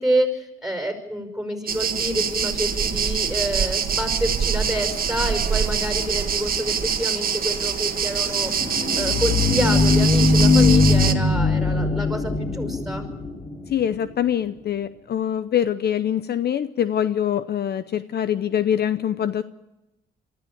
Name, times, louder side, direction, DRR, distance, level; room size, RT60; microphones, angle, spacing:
voice 1, 0.0-8.5 9.0-13.1, equal, ahead, 6 dB, 5.2 m, -27 dB
sound 1, 1.7-11.1, right 7 dB, 45° right, 1.6 m, -25 dB
sound 2, 8.3-13.8, left 3 dB, 25° left, 3.2 m, -20 dB
voice 2, 13.7-19.4, left 9 dB, 55° left, 13 dB, 0.7 m, -24 dB
23.5 x 14.0 x 8.6 m, 0.95 s
cardioid pair, 90°, 20 cm